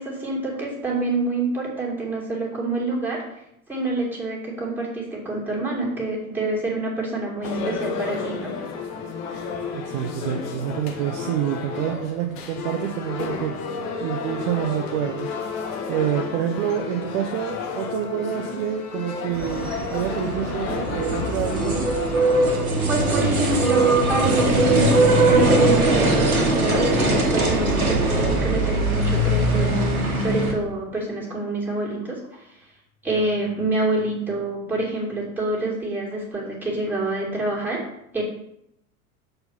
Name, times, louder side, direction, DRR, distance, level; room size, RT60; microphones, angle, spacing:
voice 1, 0.0-3.2 3.7-8.5 22.9-32.5 33.0-37.8 38.1-38.2, right 2 dB, 5° right, -4 dB, 2.4 m, -27 dB
sound 1, 7.4-22.4, left 5 dB, 40° left, 1.1 m, -32 dB
voice 2, 9.7-13.5 14.0-15.6 15.9-21.8, right 10 dB, 40° right, 4 dB, 0.7 m, -27 dB
sound 2, 19.3-30.5, right 2 dB, 80° right, 1.5 m, -21 dB
6.6 x 4.6 x 5.5 m, 0.78 s
figure-of-eight pair, 85°, 43 cm